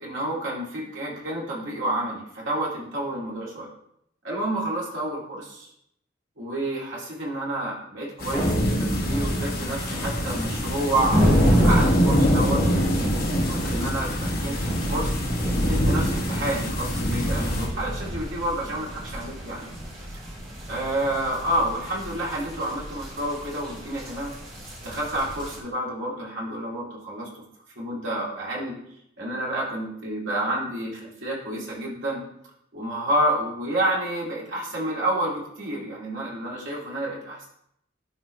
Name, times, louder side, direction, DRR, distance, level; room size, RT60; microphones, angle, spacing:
voice 1, 0.0-3.7 4.2-5.7 6.4-11.2 11.6-12.6 12.9-15.2 15.7-19.7 20.7-24.3 24.8-27.4 27.8-28.8 29.2-32.2 32.7-37.4, right 1 dB, 80° right, -4 dB, 2.3 m, -29 dB
sound 1, 8.2-17.7, equal, 50° left, 1.5 m, -25 dB
sound 2, 8.3-10.8, right 1 dB, 20° left, 2.4 m, -30 dB
sound 3, 8.5-25.6, equal, 45° right, 2.4 m, -29 dB
11.0 x 3.7 x 3.2 m, 0.72 s
head